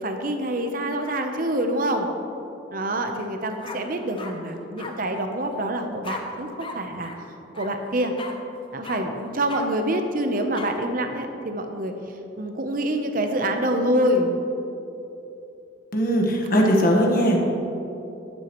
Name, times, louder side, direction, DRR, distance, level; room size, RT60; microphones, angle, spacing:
voice 1, 0.0-2.1 2.7-7.1 7.5-8.1 8.7-11.9 12.4-14.3 16.4-16.6, right 1 dB, 45° right, 5 dB, 0.8 m, -26 dB
sound 1, 3.1-3.3 3.6-4.3 4.8-4.9 6.0-6.2 6.6-6.8 7.0-7.2 7.5-7.7 8.2-8.3 8.8-9.0 9.5-9.6 10.5-10.7, left 4 dB, 25° left, 0.7 m, -36 dB
voice 2, 15.9-17.4, equal, 45° left, 0 dB, 1.4 m, -19 dB
11.5 x 11.0 x 3.1 m, 2.9 s
head